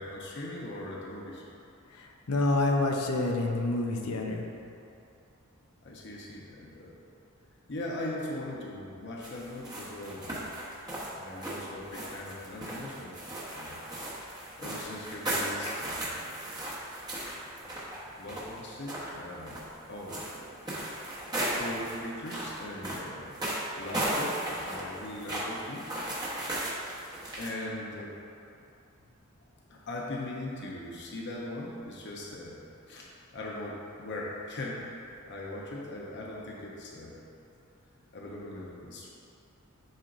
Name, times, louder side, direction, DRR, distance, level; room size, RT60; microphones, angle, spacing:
voice 1, 0.0-1.4 5.8-7.0 7.7-10.5 11.1-13.2 13.5-13.9 14.6-16.3 18.2-20.5 21.6-23.4 23.7-25.9 27.4-28.1 29.7-37.2 38.1-39.1, left 1 dB, 55° left, -4 dB, 0.8 m, -40 dB
voice 2, 1.9-4.4, left 2 dB, 85° left, 2 dB, 0.7 m, -28 dB
sound 1, 9.2-27.5, right 1 dB, 20° right, 1.1 m, -36 dB
10.5 x 4.5 x 2.6 m, 2.7 s
head